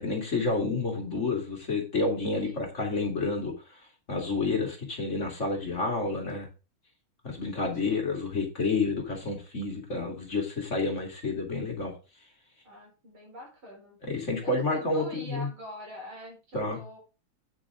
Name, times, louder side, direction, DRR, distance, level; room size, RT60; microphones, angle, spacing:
voice 1, 0.0-3.8 4.1-6.5 7.2-12.0 14.0-15.5 16.5-16.8, left 3 dB, 35° left, 2 dB, 2.6 m, -29 dB
voice 2, 2.4-2.7 7.8-8.1 12.6-17.0, left 1 dB, 85° right, -1 dB, 5.9 m, -45 dB
9.0 x 8.8 x 3.7 m, 0.30 s
omnidirectional pair, 2.2 m